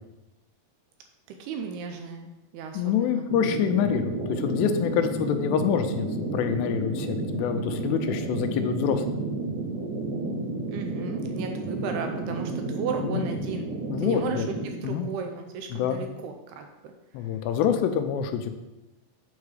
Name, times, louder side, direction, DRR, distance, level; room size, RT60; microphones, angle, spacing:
voice 1, 1.3-3.3 10.7-13.7 14.0-16.9, right 5 dB, 80° right, 4 dB, 2.5 m, -35 dB
voice 2, 2.7-9.2 13.0-13.2 13.9-14.5 14.8-15.1 15.7-16.0 17.1-18.5, left 8 dB, 85° left, 7 dB, 2.8 m, -26 dB
sound 1, 3.3-14.7, right 2 dB, 60° right, 1.8 m, -31 dB
8.3 x 4.8 x 4.8 m, 1.0 s
omnidirectional pair, 4.9 m